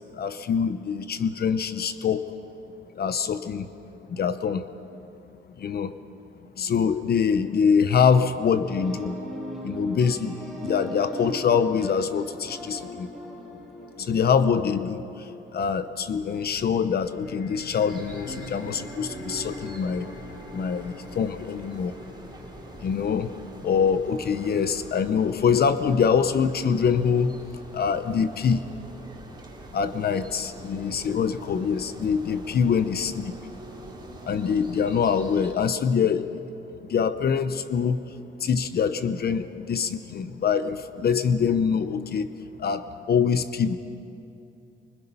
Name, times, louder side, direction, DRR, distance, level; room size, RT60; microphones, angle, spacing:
voice 1, 0.2-2.3 3.0-3.7 4.1-4.6 5.6-5.9 6.6-9.1 9.6-13.1 14.0-15.0 15.5-20.1 20.5-21.9 22.8-23.3 23.6-27.3 27.7-28.6 29.7-33.3 34.3-36.3 36.9-38.0 38.4-42.3 42.6-43.8, left 6 dB, 55° left, 11 dB, 0.9 m, -24 dB
sound 1, 8.7-16.2 18.3-19.7 20.1-20.2, equal, ahead, 6.5 m, -39 dB
sound 2, 16.0-27.0, left 4 dB, 70° left, 3.2 m, -48 dB
sound 3, 17.9-35.5, right 2 dB, 20° right, 3.6 m, -43 dB
25.0 x 24.5 x 5.6 m, 2.8 s
cardioid pair, 90°, 20 cm